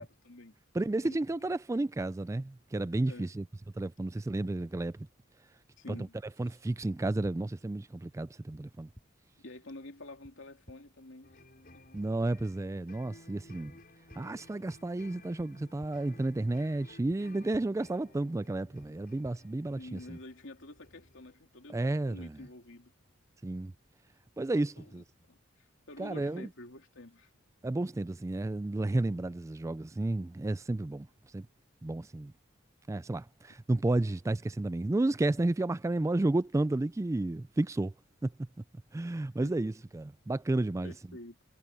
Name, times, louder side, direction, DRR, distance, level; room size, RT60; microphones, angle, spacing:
voice 1, 0.0-0.6 1.0-1.6 3.0-3.3 5.8-6.1 9.4-11.4 19.8-22.9 24.6-27.3 39.4-39.5 40.8-41.4, left 2 dB, 65° left, 3.1 m, -49 dB
voice 2, 0.7-3.4 3.8-5.0 5.9-6.0 6.4-8.9 11.9-13.7 14.2-20.2 21.7-22.3 23.4-23.7 24.4-25.0 26.0-26.5 27.6-31.1 31.3-31.5 31.8-32.3 32.9-37.9 38.2-38.3 38.9-40.9, right 2 dB, 15° right, 0.3 m, -32 dB
sound 1, 6.8-6.9 7.2-7.3 8.5-8.6 8.9-9.0 10.2-10.3 10.7-10.8 11.9-12.0 12.4-12.5 13.7-13.8 14.1-14.2 15.4-15.5 15.8-15.9 17.1-17.2 17.5-17.6 18.8-18.9 19.2-19.3, equal, 10° left, 6.2 m, -53 dB
sound 2, 11.2-21.4, left 2 dB, 50° left, 5.0 m, -57 dB
head